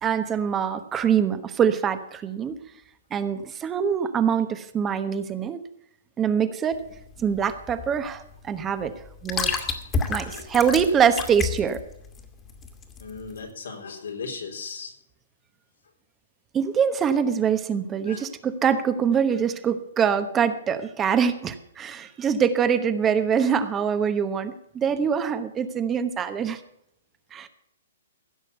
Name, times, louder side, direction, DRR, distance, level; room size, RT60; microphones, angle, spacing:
voice 1, 0.0-2.6 3.1-5.6 6.2-6.8 7.2-8.9 9.2-9.7 10.1-11.8 16.5-26.6 27.3-27.5, right 7 dB, 20° right, 10 dB, 1.0 m, -24 dB
sound 1, 6.7-13.4, left 5 dB, 20° left, 1.9 m, -31 dB
voice 2, 13.0-14.9 18.0-18.3, left 5 dB, 85° left, 2 dB, 3.9 m, -37 dB
16.0 x 6.3 x 8.1 m, 0.77 s
hypercardioid pair, 140°, 0 cm